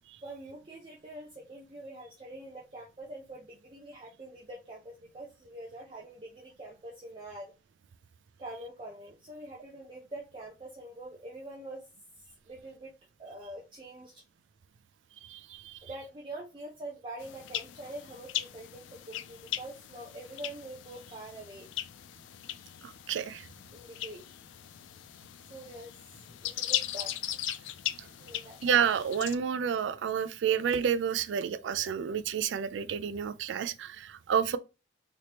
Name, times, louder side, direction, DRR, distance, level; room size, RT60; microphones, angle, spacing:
voice 1, 0.2-7.5 8.4-11.8 12.2-12.9 13.2-14.2 15.8-21.7 23.7-24.2 25.5-26.0 26.4-27.4 28.2-28.6, right 1 dB, 30° right, 0.6 m, -45 dB
voice 2, 15.3-15.7 22.8-23.4 28.6-34.6, right 7 dB, 75° right, 0.3 m, -30 dB
sound 1, 17.2-29.4, left 12 dB, 85° left, 0.3 m, -39 dB
3.3 x 3.0 x 2.9 m
head